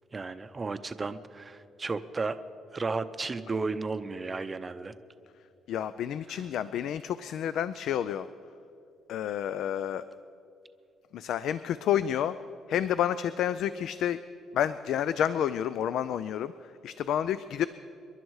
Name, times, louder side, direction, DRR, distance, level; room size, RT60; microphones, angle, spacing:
voice 1, 0.1-2.4 2.7-4.9, right 3 dB, 20° right, 11 dB, 0.6 m, -33 dB
voice 2, 5.7-8.3 9.1-10.0 11.1-12.3 12.7-14.2 14.5-17.7, left 10 dB, 70° left, 14 dB, 0.4 m, -29 dB
26.5 x 11.5 x 4.8 m, 2.6 s
cardioid pair, 145°, 0 cm